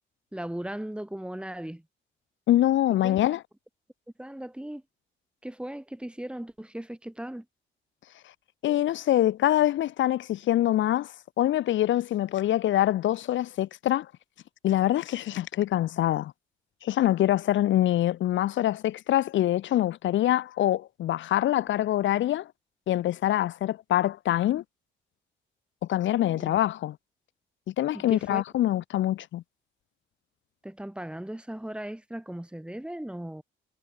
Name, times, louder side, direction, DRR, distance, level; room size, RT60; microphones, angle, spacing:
voice 1, 0.3-1.8 3.0-3.3 4.2-4.8 5.4-7.4 26.3-26.6 27.9-28.4 30.6-33.4, right 1 dB, 5° right, 4.8 m, -37 dB
voice 2, 2.5-3.4 8.6-14.1 14.6-16.3 16.8-22.5 22.9-24.6 25.9-27.0 27.7-29.4, left 13 dB, 70° left, 1.0 m, -25 dB
cardioid pair, 90°, 20 cm